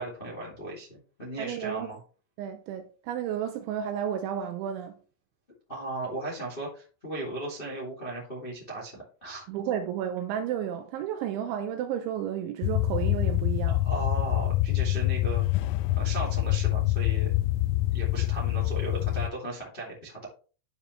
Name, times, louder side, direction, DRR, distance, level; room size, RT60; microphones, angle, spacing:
voice 1, 0.0-2.0 5.7-9.4 13.7-15.4 15.9-17.3 17.9-20.3, right 2 dB, 35° left, 0.8 m, -36 dB
voice 2, 1.4-1.9 2.4-5.0 9.5-13.8, right 9 dB, 80° right, 2.8 m, -32 dB
sound 1, 12.6-19.3, left 15 dB, 85° left, 3.2 m, -26 dB
11.5 x 5.4 x 3.2 m
omnidirectional pair, 6.0 m